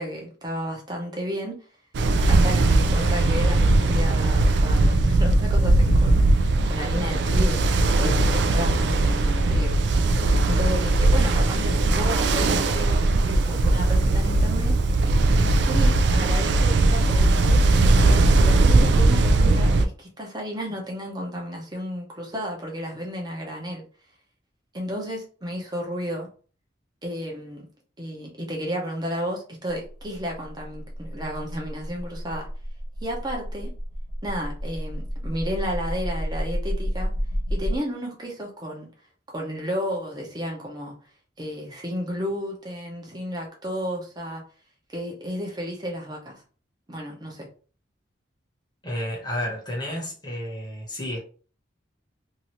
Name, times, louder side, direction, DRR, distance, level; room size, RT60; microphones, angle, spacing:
voice 1, 0.0-1.6 2.3-7.6 8.0-9.7 10.5-14.8 15.6-23.8 24.7-26.3 27.0-27.7 28.0-32.5 33.0-33.7 34.2-37.1 37.5-38.9 39.3-41.0 41.4-44.4 44.9-46.4 46.9-47.5, equal, 20° right, 0.7 m, -32 dB
Ocean, 1.9-19.9, right 2 dB, 60° right, 0.3 m, -19 dB
sound 1, 29.7-37.8, equal, 65° left, 0.7 m, -30 dB
voice 2, 48.8-51.2, left 1 dB, 20° left, 1.0 m, -31 dB
2.8 x 2.6 x 3.0 m
head